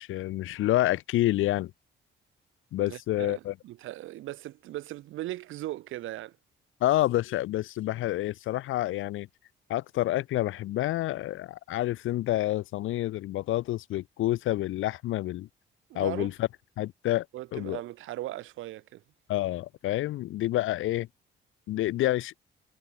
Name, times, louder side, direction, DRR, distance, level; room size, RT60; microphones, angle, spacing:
voice 1, 0.0-1.7 2.7-3.5 6.8-9.3 9.7-15.5 15.9-16.5 16.8-17.3 17.5-17.8 19.3-21.1 21.7-22.4, left 15 dB, 85° left, 2.5 m, -28 dB
voice 2, 2.9-6.4 15.9-16.3 17.3-19.0, right 15 dB, 90° right, 4.9 m, -38 dB
cardioid pair, 90°, 20 cm